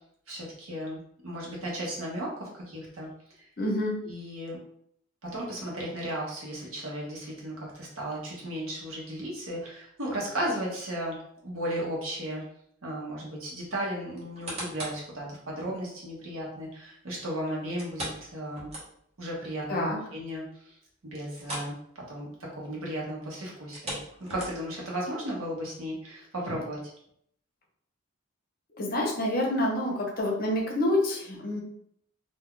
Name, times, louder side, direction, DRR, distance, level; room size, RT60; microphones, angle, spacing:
voice 1, 0.3-3.1 3.3-3.5 4.0-4.6 5.2-11.2 11.4-12.4 12.8-18.7 19.2-20.8 21.0-24.0 24.3-26.8, right 1 dB, 80° right, -3 dB, 1.1 m, -35 dB
voice 2, 3.6-4.0 19.7-20.0 26.5-26.6 28.8-31.6, left 1 dB, 45° left, 0 dB, 0.7 m, -27 dB
sound 1, 14.2-15.1 15.6-15.7 17.8-19.2 19.6-19.7 20.1-20.2 21.3-21.8 22.1-22.3 23.6-24.8 25.5-25.6, right 1 dB, 30° right, 0.9 m, -39 dB
2.6 x 2.3 x 3.7 m, 0.69 s
head